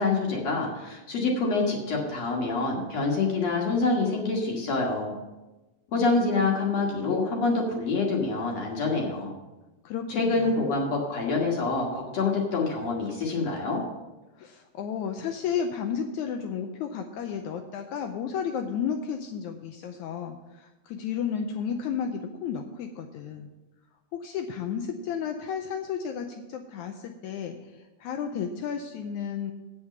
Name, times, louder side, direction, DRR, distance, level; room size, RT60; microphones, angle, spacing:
voice 1, 0.0-5.2 5.9-9.3 10.1-13.8, left 3 dB, 55° left, -1 dB, 2.4 m, -26 dB
voice 2, 9.8-10.6 14.4-23.5 24.1-27.6 28.0-29.5, left 7 dB, 85° left, 5 dB, 1.7 m, -32 dB
8.8 x 7.2 x 6.6 m, 1.1 s
omnidirectional pair, 4.0 m